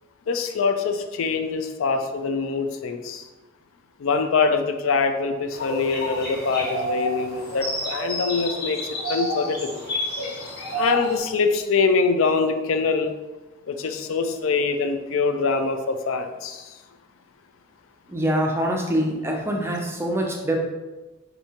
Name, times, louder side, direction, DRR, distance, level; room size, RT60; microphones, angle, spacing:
voice 1, 0.3-3.2 4.0-8.8 9.1-9.8 10.7-13.1 13.7-16.7, left 4 dB, 80° left, 7 dB, 0.4 m, -24 dB
sound 1, 5.5-11.2, equal, 45° left, 1.1 m, -29 dB
voice 2, 18.1-20.6, equal, 10° right, 1 dB, 0.4 m, -24 dB
4.5 x 2.7 x 2.8 m, 1.2 s
head